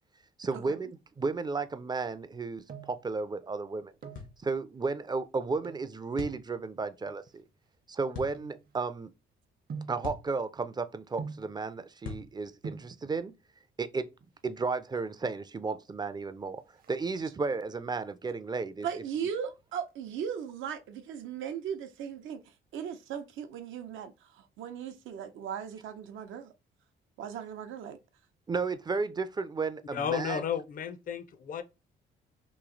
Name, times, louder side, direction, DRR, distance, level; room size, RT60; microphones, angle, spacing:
voice 1, 0.4-0.9 1.2-3.9 4.4-7.4 7.9-9.1 9.9-13.3 13.8-14.1 14.4-16.6 16.9-18.9 28.5-30.4, right 4 dB, 20° right, 0.4 m, -33 dB
sound 1, 2.6-3.1 3.8-4.3 5.6-6.0 6.7-9.1 9.7-10.1 11.2-11.6 12.3-12.4 12.6-13.0 14.1-14.6 14.9-15.0 15.3-15.4 15.8-16.2 16.5-17.5 18.0-18.4 18.7-19.9 20.2-20.3, right 5 dB, 50° right, 0.7 m, -45 dB
sound 2, 4.1-4.4 6.2-6.4 8.1-8.4 10.0-10.3 12.0-12.3, left 5 dB, 80° left, 1.1 m, -40 dB
voice 2, 18.8-26.5 27.2-28.0, right 8 dB, 80° right, 0.7 m, -38 dB
voice 3, 29.8-31.6, left 7 dB, 45° left, 0.5 m, -33 dB
3.1 x 2.7 x 3.8 m
cardioid pair, 90°, 20 cm